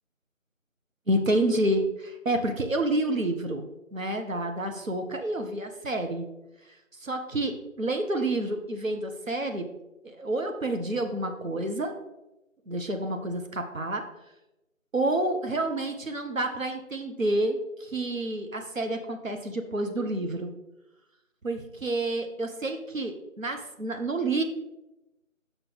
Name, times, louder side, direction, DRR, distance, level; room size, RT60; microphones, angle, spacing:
voice 1, 1.1-3.7 3.9-6.3 7.0-9.7 10.0-11.9 12.7-14.0 14.9-20.5 21.4-24.4, right 1 dB, 70° right, 5 dB, 1.0 m, -29 dB
6.5 x 6.1 x 4.0 m, 0.95 s
figure-of-eight pair, 170°, 41 cm